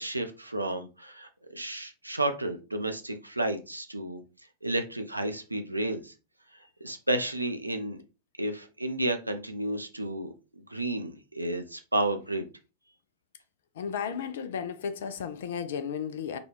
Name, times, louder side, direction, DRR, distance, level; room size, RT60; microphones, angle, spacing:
voice 1, 0.0-4.2 4.6-6.1 6.8-8.0 8.4-10.3 10.7-12.5, right 1 dB, 85° right, 0.5 m, -31 dB
voice 2, 13.8-16.4, left 7 dB, 60° left, 0.3 m, -34 dB
3.8 x 2.3 x 3.1 m
figure-of-eight pair, 90°, 0 cm